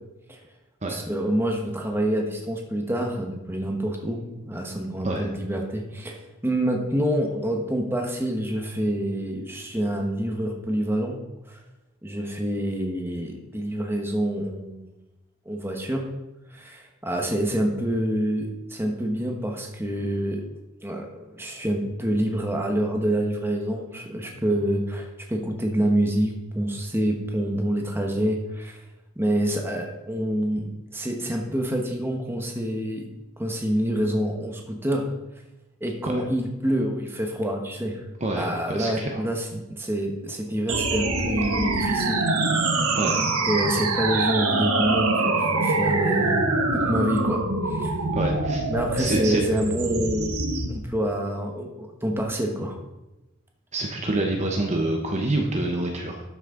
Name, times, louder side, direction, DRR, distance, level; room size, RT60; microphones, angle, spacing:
voice 1, 0.9-11.2 11.5-11.6 12.0-14.9 15.4-16.0 16.5-20.5 20.8-28.8 29.2-33.1 33.4-35.1 35.8-38.0 38.4-42.2 42.5-43.0 43.5-46.4 46.7-47.4 47.7-48.0 48.7-52.8, right 1 dB, 10° right, 2 dB, 1.2 m, -27 dB
voice 2, 38.2-39.2 42.9-43.2 48.2-48.6 49.0-49.4 53.7-56.2, right 2 dB, 30° right, 2 dB, 0.9 m, -26 dB
sound 1, 40.7-50.7, right 3 dB, 85° right, 1.3 m, -24 dB
12.5 x 6.3 x 3.8 m, 0.98 s
head